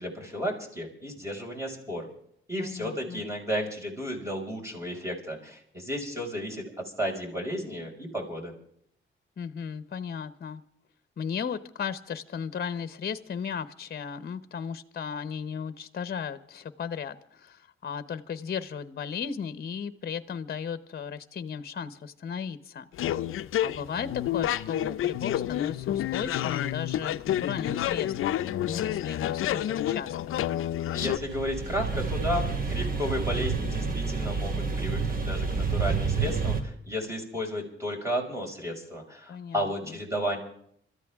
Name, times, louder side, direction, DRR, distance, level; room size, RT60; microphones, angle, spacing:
voice 1, 0.0-2.1 2.5-6.6 7.0-8.5 30.9-40.4, equal, 15° right, 0 dB, 5.9 m, -33 dB
voice 2, 2.6-3.2 9.4-10.6 11.2-23.1 23.6-30.1 39.3-39.9, left 7 dB, 50° left, 13 dB, 1.0 m, -36 dB
sound 1, 22.9-31.2, left 12 dB, 85° left, 0.6 m, -29 dB
sound 2, 31.0-36.6, right 4 dB, 45° right, 2.3 m, -29 dB
27.0 x 14.0 x 3.6 m, 0.67 s
cardioid pair, 100°, 21 cm